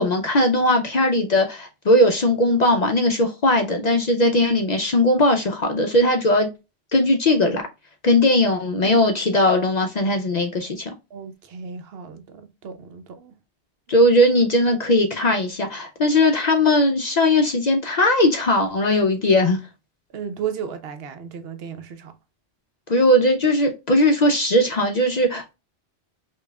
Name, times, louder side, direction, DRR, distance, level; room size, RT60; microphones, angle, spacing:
voice 1, 0.0-6.5 6.9-7.6 8.0-10.9 13.9-19.6 22.9-25.5, left 1 dB, 55° left, 0.5 m, -19 dB
voice 2, 11.1-13.4 20.1-22.1, right 7 dB, 70° right, 0.8 m, -34 dB
5.1 x 2.4 x 2.2 m
omnidirectional pair, 1.1 m